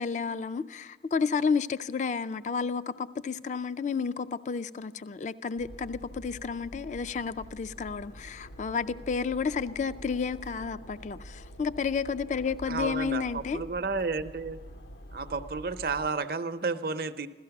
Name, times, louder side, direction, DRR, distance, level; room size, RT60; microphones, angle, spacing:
voice 1, 0.0-13.6, left 5 dB, 40° left, 0.4 m, -31 dB
sound 1, 5.6-16.1, equal, 70° left, 0.7 m, -46 dB
voice 2, 12.7-14.6 15.1-17.3, right 4 dB, 55° right, 0.7 m, -32 dB
16.0 x 13.5 x 5.9 m
head